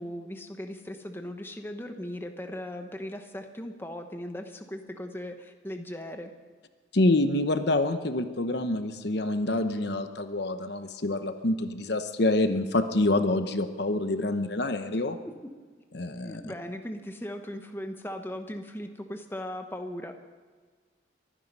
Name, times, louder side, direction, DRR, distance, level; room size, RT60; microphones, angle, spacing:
voice 1, 0.0-6.3 15.4-15.5 16.2-20.1, left 1 dB, 10° left, 5 dB, 1.0 m, -38 dB
voice 2, 6.9-15.2 15.9-16.4, left 2 dB, 55° left, 9 dB, 0.9 m, -26 dB
23.5 x 10.0 x 5.4 m, 1.5 s
head